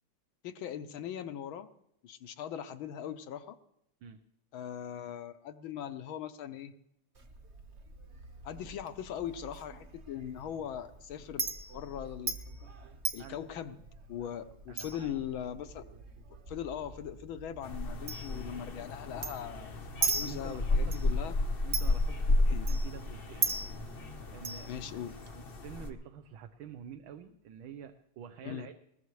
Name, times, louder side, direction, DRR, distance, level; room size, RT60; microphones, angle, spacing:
voice 1, 0.4-1.7 2.0-3.6 4.5-6.7 8.4-11.5 11.7-12.4 13.1-13.8 14.1-15.8 16.5-21.3 22.5-22.7 24.7-25.1 28.4-28.7, left 9 dB, 70° left, 10 dB, 1.5 m, -40 dB
Chink clink, 7.1-25.4, right 4 dB, 35° right, 1.3 m, -40 dB
voice 2, 14.7-15.1 20.1-20.9 21.6-23.5 24.3-24.8 25.3-28.7, right 8 dB, 70° right, 7 dB, 1.6 m, -48 dB
sound 1, 17.6-25.9, left 2 dB, 40° left, 0.8 m, -32 dB
21.5 x 20.0 x 3.2 m, 0.79 s
omnidirectional pair, 2.4 m